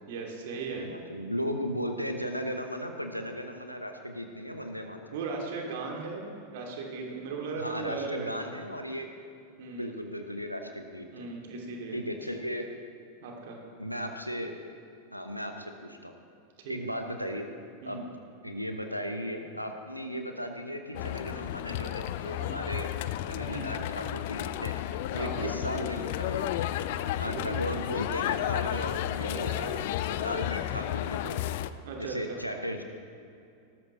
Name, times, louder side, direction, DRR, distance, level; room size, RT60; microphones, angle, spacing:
voice 1, 0.1-0.9 5.1-8.3 9.6-10.0 11.1-12.0 13.2-13.6 16.6-16.8 17.8-18.1 22.4-22.6 23.5-23.7 25.1-25.5 27.2-27.6 28.5-28.6 29.3-29.7 31.8-32.4, right 4 dB, 55° right, 0 dB, 2.4 m, -37 dB
voice 2, 0.7-5.2 7.6-9.1 9.7-11.1 11.9-12.7 13.8-14.5 15.1-16.1 16.7-17.5 17.8-18.1 18.4-22.9 23.3-26.6 27.2-31.5 32.0-32.8, equal, 90° left, 5 dB, 0.9 m, -36 dB
sound 1, 20.9-31.7, left 13 dB, 50° left, 0.4 m, -32 dB
18.5 x 13.0 x 3.1 m, 2.6 s
figure-of-eight pair, 90°, 0 cm